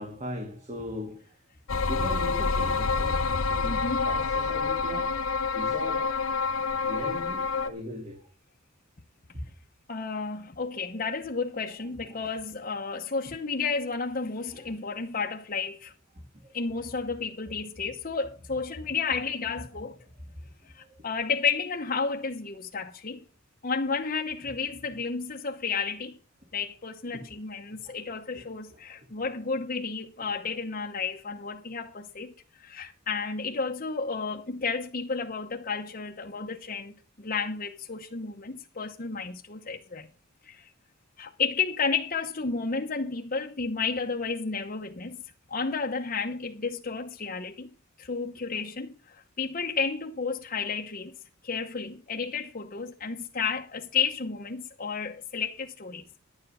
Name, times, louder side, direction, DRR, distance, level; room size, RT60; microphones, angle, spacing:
voice 1, 0.0-1.3 1.7-3.8 4.1-5.2 5.5-6.2 6.6-8.2 10.9-11.1 12.2-12.3 14.5-14.9 16.4-16.5 20.8-21.0 27.8-27.9, equal, 35° right, 1.9 m, -39 dB
sound 1, 1.7-7.7, left 4 dB, 90° left, 0.9 m, -27 dB
voice 2, 3.6-4.1 9.9-15.9 16.5-20.0 20.6-23.2 23.6-26.2 26.5-40.1 40.4-40.7 41.2-45.2 45.5-47.7 48.0-51.1 51.4-56.0, left 5 dB, 40° left, 1.0 m, -32 dB
11.0 x 9.4 x 5.5 m
head